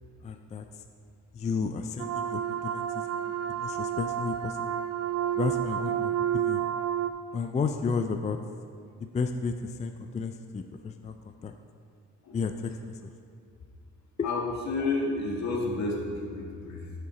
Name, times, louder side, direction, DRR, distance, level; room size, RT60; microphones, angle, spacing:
voice 1, 0.2-0.6 1.3-4.8 5.4-6.6 7.3-8.4 9.1-11.5 12.3-12.9 14.2-14.3, left 5 dB, 25° left, 7 dB, 0.4 m, -32 dB
sound 1, 2.0-7.1, right 10 dB, 55° right, 0.4 m, -30 dB
voice 2, 14.2-16.9, left 3 dB, 65° left, -1 dB, 1.7 m, -30 dB
7.1 x 6.7 x 4.9 m, 2.6 s
cardioid pair, 90°, 30 cm